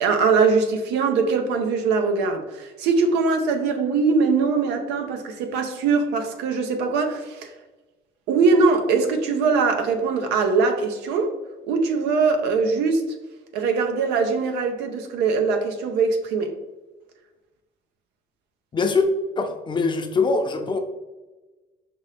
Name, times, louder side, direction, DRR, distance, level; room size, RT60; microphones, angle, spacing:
voice 1, 0.0-7.5 8.3-11.4 11.6-13.0 13.5-16.5, right 4 dB, 90° right, 6 dB, 0.7 m, -22 dB
voice 2, 18.7-19.1 19.4-20.8, left 4 dB, 30° left, 5 dB, 0.6 m, -22 dB
5.3 x 2.7 x 3.3 m, 1.2 s
cardioid pair, 110°, 17 cm